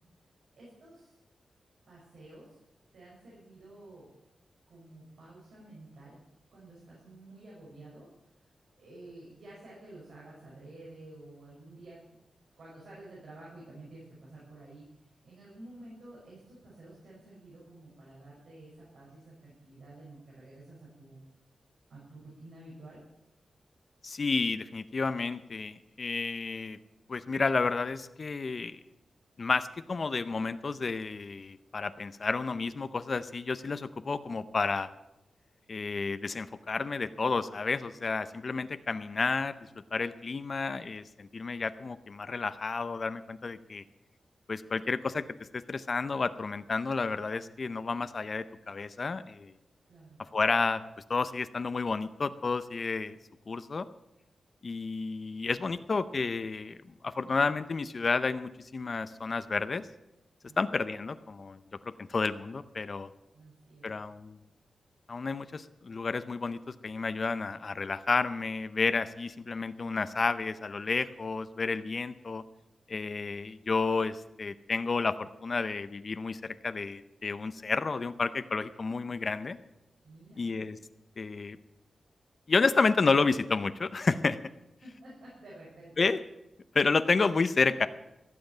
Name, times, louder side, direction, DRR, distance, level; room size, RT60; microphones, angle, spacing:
voice 1, 0.6-1.2 1.9-2.6 2.9-4.1 4.7-6.2 6.5-8.1 8.4-8.5 8.8-12.0 12.6-21.2 21.9-23.0 49.9-50.2 60.4-60.6 63.3-63.9 80.0-80.5 84.8-85.9, right 2 dB, 80° right, -5 dB, 6.1 m, -51 dB
voice 2, 24.0-26.8 27.1-28.8 29.4-34.9 35.7-39.5 39.9-43.8 44.5-45.2 45.5-49.5 50.2-50.8 51.1-53.2 53.5-53.9 54.6-56.8 57.0-59.9 60.6-61.6 62.0-63.1 63.8-64.4 65.1-72.4 72.9-79.6 80.4-80.8 81.2-81.6 82.5-84.4 86.0-86.2 86.7-87.9, left 4 dB, 40° left, 12 dB, 0.6 m, -31 dB
15.5 x 7.7 x 9.1 m, 0.92 s
wide cardioid pair, 155°, 0 cm